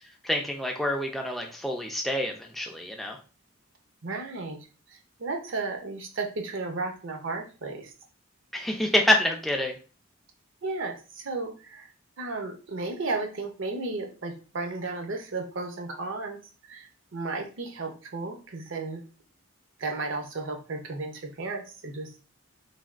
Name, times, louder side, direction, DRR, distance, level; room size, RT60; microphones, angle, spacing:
voice 1, 0.2-3.2 8.5-9.7, left 1 dB, ahead, 1 dB, 0.3 m, -27 dB
voice 2, 4.0-4.6 4.9-7.9 10.6-11.9 12.2-16.4 16.6-19.0 19.8-22.1, right 3 dB, 60° right, 4 dB, 0.5 m, -34 dB
3.3 x 2.2 x 2.4 m, 0.35 s
head